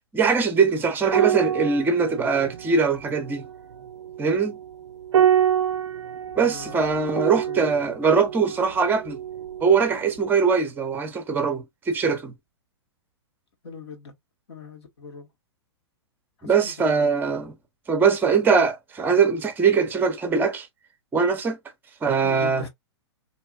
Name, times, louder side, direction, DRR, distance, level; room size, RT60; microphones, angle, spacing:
voice 1, 0.1-3.4 4.2-4.6 6.4-9.2 9.6-12.3 16.4-17.5 17.9-20.7 21.1-21.6 22.0-22.7, right 5 dB, 15° right, 0.7 m, -22 dB
sound 1, 1.1-9.8 10.1-10.3, right 9 dB, 85° right, 0.4 m, -27 dB
voice 2, 6.4-6.8 7.2-7.7 13.6-14.1 14.5-15.3 16.4-17.1 22.2-22.7, left 5 dB, 70° left, 1.2 m, -40 dB
2.7 x 2.4 x 2.3 m
hypercardioid pair, 120°, 15 cm